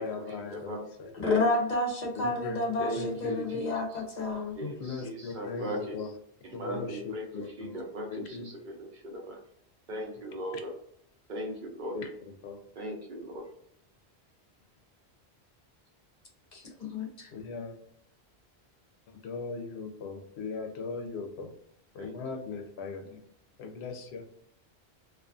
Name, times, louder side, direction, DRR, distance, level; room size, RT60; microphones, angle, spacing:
voice 1, 0.0-1.4 2.2-2.6 3.0-3.6 4.6-6.1 6.5-7.8 8.1-8.5 11.9-12.7 17.3-17.8 19.1-21.5 21.9-23.2 23.6-24.2, left 4 dB, 80° left, 4 dB, 0.8 m, -39 dB
voice 2, 0.5-0.8 1.2-1.4 2.8-3.7 4.6-4.7 5.0-6.0 6.6-7.2 7.6-9.4 9.9-10.7 11.3-12.0 12.8-13.4 22.0-22.2, equal, 55° right, 0 dB, 0.7 m, -36 dB
voice 3, 1.1-4.6 16.5-17.3, left 2 dB, 50° left, 0 dB, 0.6 m, -30 dB
2.4 x 2.4 x 2.4 m, 0.71 s
omnidirectional pair, 1.1 m